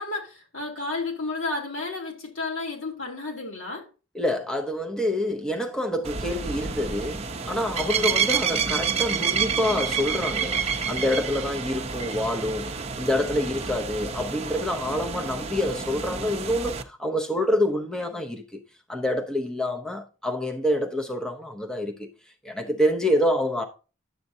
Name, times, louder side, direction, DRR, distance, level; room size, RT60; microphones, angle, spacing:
voice 1, 0.0-3.9, left 3 dB, 65° left, 3.2 m, -32 dB
voice 2, 4.1-18.4 18.9-22.1 22.4-23.6, left 1 dB, 5° left, 0.7 m, -27 dB
sound 1, 6.0-16.8, right 6 dB, 30° right, 0.8 m, -29 dB
10.5 x 7.7 x 2.7 m
head